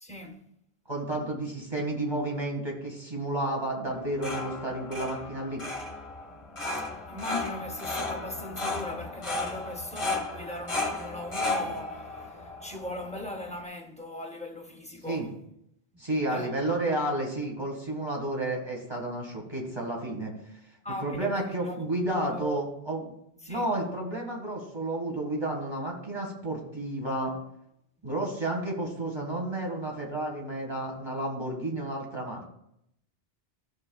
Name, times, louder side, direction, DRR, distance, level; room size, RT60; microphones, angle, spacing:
voice 1, 0.0-0.5 6.3-15.3 16.3-16.6 20.8-21.8 22.0-22.6 23.4-23.7, left 1 dB, 5° left, 0.7 m, -39 dB
voice 2, 0.9-5.6 15.1-15.3 16.0-20.3 21.0-23.0 23.5-27.3 28.0-32.4, right 1 dB, 25° right, 2.0 m, -31 dB
sound 1, 3.9-13.6, left 2 dB, 30° left, 0.9 m, -34 dB
13.5 x 6.3 x 2.3 m
omnidirectional pair, 1.0 m